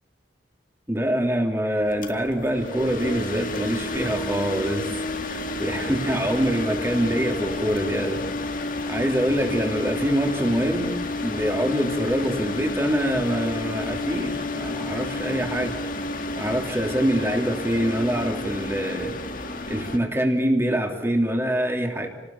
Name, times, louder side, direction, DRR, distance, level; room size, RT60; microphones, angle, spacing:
voice 1, 0.9-4.9 5.2-8.3 8.5-10.9 11.2-15.8 16.4-19.1 19.7-22.1, equal, 15° right, 2 dB, 3.1 m, -25 dB
sound 1, 1.8-20.0, left 2 dB, 45° left, 2.0 m, -30 dB
30.0 x 19.5 x 7.3 m, 1.1 s
head